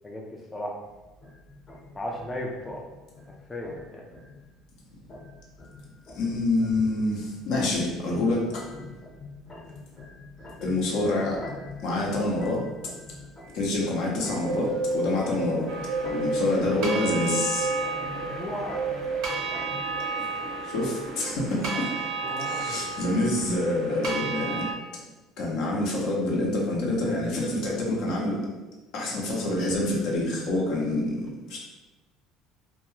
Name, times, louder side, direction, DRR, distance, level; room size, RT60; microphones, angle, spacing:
sound 1, 0.8-20.0, left 2 dB, 45° left, 1.0 m, -45 dB
voice 1, 1.9-2.8 3.5-4.0 18.2-18.8 22.2-22.9, left 1 dB, 20° left, -1 dB, 0.4 m, -35 dB
voice 2, 6.1-8.6 10.6-11.4 11.8-12.6 13.5-15.7 16.0-17.7 20.6-21.9 22.4-24.7 25.4-28.4 28.9-31.6, left 2 dB, 70° left, -3 dB, 0.8 m, -27 dB
Bird, 14.3-22.6, right 3 dB, 55° right, 0.4 m, -33 dB
sound 2, 15.7-24.7, right 4 dB, 70° right, 0.8 m, -34 dB
2.3 x 2.3 x 3.0 m, 1.1 s
supercardioid pair, 80°, 0 cm